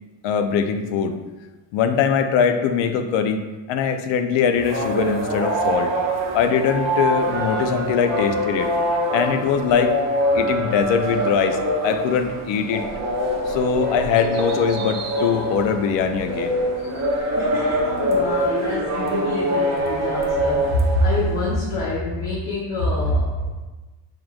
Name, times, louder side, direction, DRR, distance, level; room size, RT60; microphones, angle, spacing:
voice 1, 0.2-1.2 1.7-5.9 6.3-8.7 9.1-9.9 10.3-12.9 13.5-16.6, left 6 dB, 80° left, 8 dB, 0.6 m, -22 dB
sound 1, 4.6-21.6, equal, 35° right, 0.7 m, -24 dB
voice 2, 17.4-23.5, left 1 dB, 45° left, -5 dB, 0.9 m, -25 dB
4.7 x 3.7 x 2.3 m, 1.2 s
cardioid pair, 150°, 44 cm